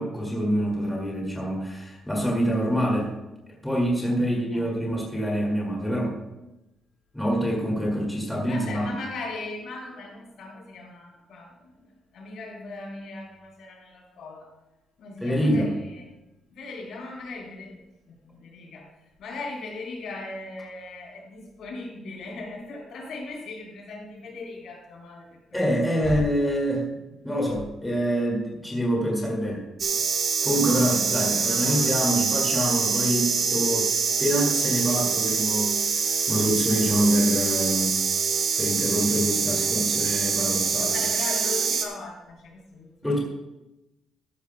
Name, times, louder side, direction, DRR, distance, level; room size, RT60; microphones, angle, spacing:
voice 1, 0.0-3.1 3.6-6.2 7.1-8.9 15.2-15.7 25.5-26.9 27.2-29.6 30.4-33.9 34.2-38.0 38.5-40.9 43.0-43.2, equal, 5° left, -2 dB, 2.3 m, -26 dB
voice 2, 4.2-4.7 8.5-14.5 15.0-16.1 16.5-17.8 18.1-18.9 19.2-25.6 26.0-26.5 30.5-31.9 39.2-40.1 40.8-43.2, left 3 dB, 70° left, -2 dB, 4.2 m, -39 dB
sound 1, 29.8-41.8, right 5 dB, 45° right, 1.2 m, -25 dB
14.5 x 11.5 x 2.3 m, 0.96 s
cardioid pair, 150°, 0 cm